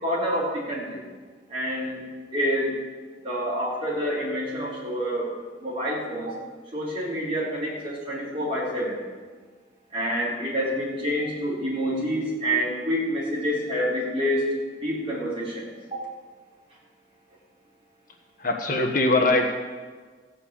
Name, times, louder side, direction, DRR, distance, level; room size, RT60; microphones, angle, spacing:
voice 1, 0.0-1.0 1.5-2.0 2.3-2.7 3.2-5.3 5.6-6.3 6.7-9.0 9.9-14.4 14.8-15.6 15.9-16.0, equal, 30° right, -7 dB, 4.6 m, -27 dB
voice 2, 18.4-19.5, left 2 dB, 50° left, 2 dB, 1.3 m, -21 dB
16.0 x 5.6 x 8.5 m, 1.5 s
head